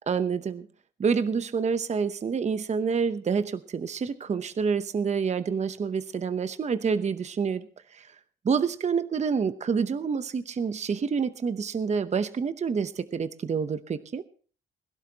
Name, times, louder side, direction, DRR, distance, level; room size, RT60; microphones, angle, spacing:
voice 1, 0.1-0.7 1.0-8.1 8.4-14.2, right 6 dB, 35° right, 12 dB, 0.8 m, -28 dB
21.5 x 12.0 x 2.9 m, 0.41 s
cardioid pair, 90°, 20 cm